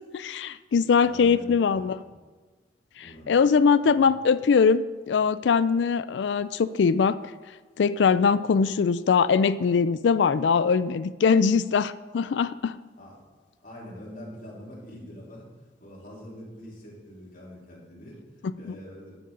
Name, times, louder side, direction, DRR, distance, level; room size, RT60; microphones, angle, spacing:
voice 1, 0.1-2.0 3.0-7.2 7.8-12.8 18.7-18.8, left 5 dB, 80° left, 15 dB, 0.4 m, -22 dB
voice 2, 1.0-2.1 3.0-3.4 3.8-4.1 13.0-13.2 13.6-15.5 15.8-19.2, left 1 dB, 50° left, -6 dB, 3.6 m, -44 dB
12.0 x 8.4 x 3.8 m, 1.3 s
head